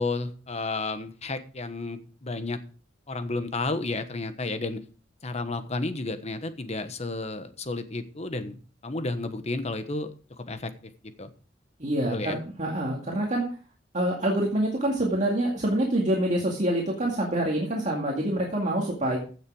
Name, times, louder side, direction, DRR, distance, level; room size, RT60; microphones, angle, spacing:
voice 1, 0.0-2.6 3.1-4.8 5.2-8.6 8.8-10.1 10.4-10.7 11.2-11.3 12.1-12.4, left 3 dB, 35° left, 10 dB, 1.2 m, -31 dB
voice 2, 11.8-13.5 13.9-19.2, right 1 dB, 40° right, -2 dB, 2.2 m, -26 dB
15.5 x 6.6 x 4.8 m, 0.39 s
head